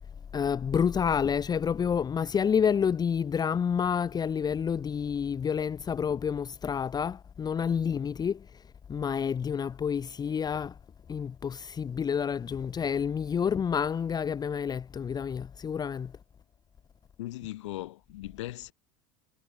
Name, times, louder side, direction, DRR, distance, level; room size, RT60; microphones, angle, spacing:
voice 1, 0.3-8.6 8.9-10.8 11.1-16.1, left 7 dB, 25° left, 1.1 m, -29 dB
voice 2, 17.2-18.7, left 16 dB, 90° left, 1.7 m, -38 dB
supercardioid pair, 105°, 15 cm